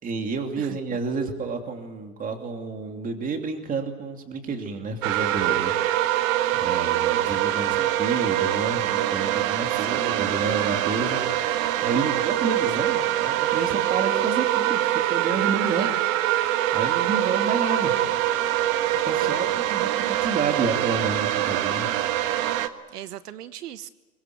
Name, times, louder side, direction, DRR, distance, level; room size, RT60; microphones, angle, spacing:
voice 1, 0.0-5.8 6.5-15.9 16.7-18.2 19.0-21.9, right 4 dB, 20° right, 4 dB, 2.8 m, -30 dB
sound 1, 5.0-22.7, right 13 dB, 55° right, 1.6 m, -24 dB
voice 2, 22.9-23.9, right 12 dB, 80° right, 13 dB, 1.2 m, -38 dB
24.0 x 20.0 x 9.5 m, 1.2 s
hypercardioid pair, 145°, 46 cm